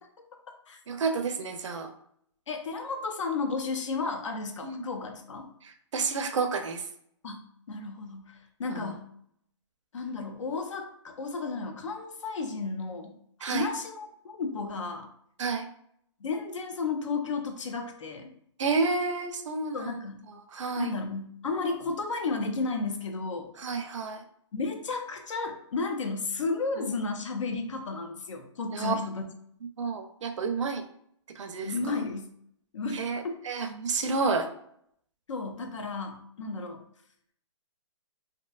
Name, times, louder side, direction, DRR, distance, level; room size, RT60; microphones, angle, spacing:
voice 1, 0.9-1.9 4.6-4.9 5.6-6.8 8.7-8.9 13.4-13.7 15.4-15.7 18.6-20.0 20.3-20.9 23.6-24.2 26.8-26.9 28.7-28.9 29.8-30.8 31.4-32.0 32.9-34.5, right 4 dB, 75° right, 7 dB, 0.5 m, -30 dB
voice 2, 2.5-5.5 7.2-9.1 9.9-15.1 16.2-18.3 19.7-20.2 20.8-23.5 24.5-29.3 31.6-32.3 32.7-33.4 35.3-36.8, left 4 dB, 80° left, 4 dB, 0.6 m, -33 dB
2.6 x 2.2 x 2.3 m, 0.69 s
hypercardioid pair, 180°, 16 cm